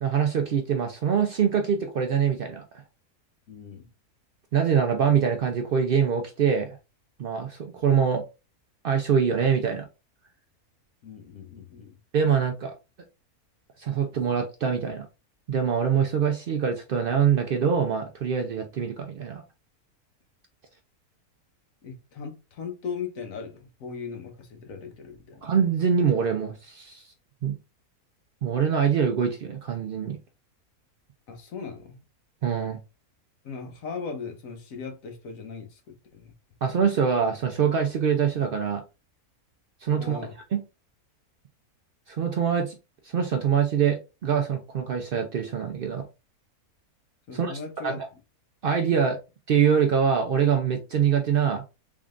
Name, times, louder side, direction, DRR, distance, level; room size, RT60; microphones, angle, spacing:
voice 1, 0.0-2.6 4.5-6.8 7.2-8.2 8.8-9.9 12.1-12.7 13.8-15.1 15.5-19.4 25.4-27.1 27.4-27.5 28.4-30.2 32.4-32.8 36.6-38.8 39.8-40.2 40.5-40.6 42.1-42.8 43.1-46.0 47.3-47.9 48.6-49.2 49.5-51.6, right 7 dB, 90° right, 0.4 m, -24 dB
voice 2, 3.5-3.9 11.0-11.9 21.8-25.4 31.3-32.0 33.4-36.3 40.0-40.3 47.3-48.0, left 5 dB, 65° left, 1.3 m, -38 dB
3.7 x 3.6 x 2.4 m
omnidirectional pair, 1.6 m